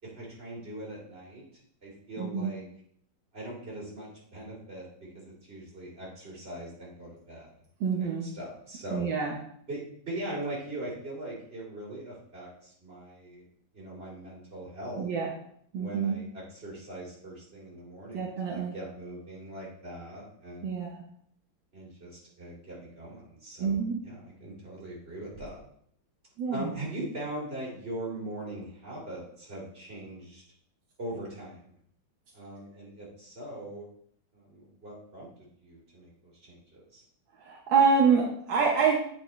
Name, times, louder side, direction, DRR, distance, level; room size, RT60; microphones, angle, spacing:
voice 1, 0.0-1.4 1.8-2.6 3.3-4.9 5.1-7.5 8.0-9.1 9.7-13.4 13.7-15.1 15.8-20.8 21.7-23.8 24.0-25.6 26.5-30.4 31.0-31.6 32.3-33.8 34.3-35.3 35.6-37.0, right 1 dB, 30° right, -5 dB, 3.1 m, -41 dB
voice 2, 2.2-2.5 7.8-8.3 8.9-9.4 14.9-15.3 15.7-16.2 18.1-18.7 20.6-20.9 23.6-24.0 26.4-26.7 37.4-39.0, right 5 dB, 75° right, -2 dB, 1.7 m, -26 dB
8.7 x 5.5 x 3.1 m, 0.64 s
omnidirectional pair, 2.1 m